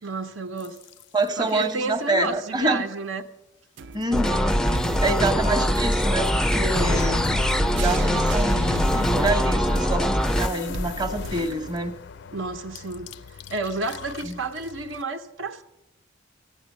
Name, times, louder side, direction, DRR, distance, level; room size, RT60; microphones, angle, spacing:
voice 1, 0.0-0.8 1.4-3.2 4.8-5.8 12.3-15.6, right 3 dB, 80° right, 1.1 m, -31 dB
sound 1, 0.6-1.5 6.8-15.0, left 6 dB, 60° left, 0.4 m, -36 dB
voice 2, 1.1-2.9 3.9-4.6 5.0-7.2 7.7-11.9 14.2-14.4, right 2 dB, 20° right, 0.9 m, -27 dB
sound 2, 3.8-11.8, right 4 dB, 65° right, 0.5 m, -39 dB
sound 3, 4.1-10.5, equal, 5° left, 0.4 m, -22 dB
13.5 x 8.7 x 8.3 m
head